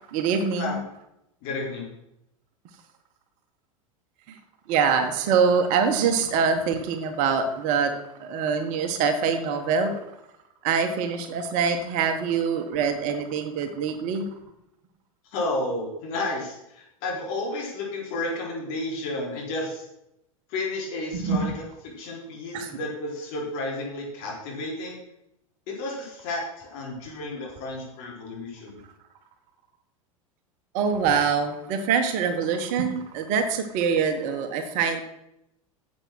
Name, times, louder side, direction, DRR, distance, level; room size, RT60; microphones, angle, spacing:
voice 1, 0.1-0.8 4.7-7.9 8.2-10.0 10.6-14.3 21.1-21.5 22.5-22.7 30.7-35.0, right 6 dB, 45° right, 7 dB, 1.4 m, -24 dB
voice 2, 1.4-1.9 15.3-19.8 20.5-25.0 25.7-28.8, left 2 dB, 50° left, -2 dB, 4.3 m, -32 dB
9.7 x 7.5 x 6.3 m, 0.83 s
figure-of-eight pair, 90°, 18 cm